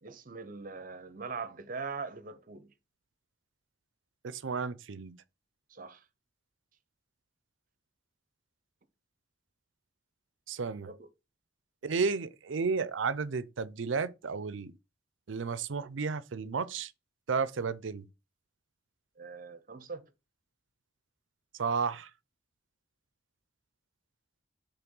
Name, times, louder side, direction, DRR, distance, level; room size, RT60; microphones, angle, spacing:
voice 1, 0.0-2.7 5.7-6.0 10.8-11.1 19.2-20.1, right 4 dB, 45° right, 0.7 m, -41 dB
voice 2, 4.2-5.1 10.5-10.9 11.8-14.7 15.3-16.9 17.3-18.1 21.6-22.1, right 5 dB, 80° right, 0.5 m, -32 dB
5.9 x 3.5 x 5.3 m
head